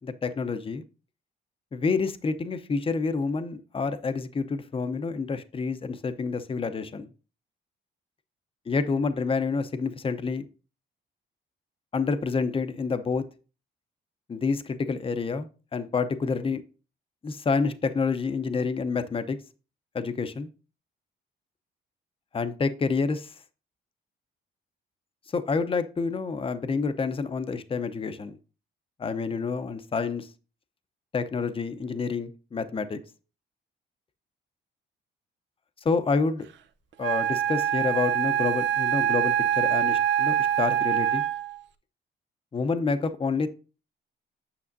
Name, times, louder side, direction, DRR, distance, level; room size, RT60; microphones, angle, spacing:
voice 1, 0.0-0.8 1.7-7.1 8.7-10.4 11.9-13.2 14.3-16.6 17.2-19.4 19.9-20.5 22.3-23.3 25.3-28.4 29.0-30.3 31.1-33.0 35.9-36.5 37.0-41.3 42.5-43.5, left 4 dB, 25° left, 0.7 m, -28 dB
Wind instrument woodwind instrument, 37.0-41.6, right 10 dB, 70° right, 0.6 m, -25 dB
8.5 x 6.2 x 2.6 m
cardioid pair, 90°, 20 cm